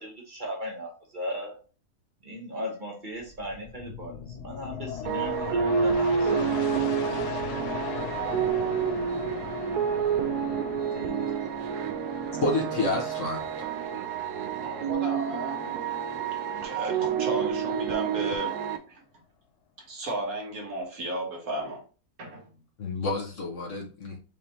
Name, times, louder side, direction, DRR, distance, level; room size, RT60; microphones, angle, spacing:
voice 1, 0.0-1.5 2.2-6.5 7.1-7.2 10.9-11.3, equal, 35° right, 0 dB, 1.1 m, -37 dB
sound 1, 3.2-16.4 16.9-17.0, left 8 dB, 85° left, 1.1 m, -39 dB
sound 2, 5.1-18.8, right 7 dB, 90° right, 1.2 m, -29 dB
voice 2, 12.4-13.7 22.8-24.2, left 2 dB, 55° left, 1 dB, 1.2 m, -29 dB
voice 3, 14.6-15.7 16.6-18.6 18.9-19.0 19.9-21.8 22.2-22.5, right 1 dB, 65° right, 0 dB, 1.8 m, -34 dB
5.1 x 3.3 x 2.8 m, 0.36 s
omnidirectional pair, 1.6 m